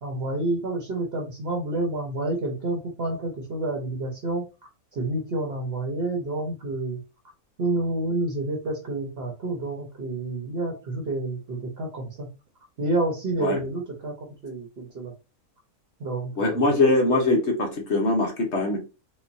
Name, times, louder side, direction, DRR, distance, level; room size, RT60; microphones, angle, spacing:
voice 1, 0.0-4.4 4.9-7.0 7.6-12.3 12.8-14.1 14.4-15.1 16.0-16.6, right 2 dB, 45° right, 1.1 m, -29 dB
voice 2, 16.4-18.8, left 2 dB, 50° left, 1.2 m, -22 dB
4.4 x 2.5 x 2.6 m
omnidirectional pair, 1.6 m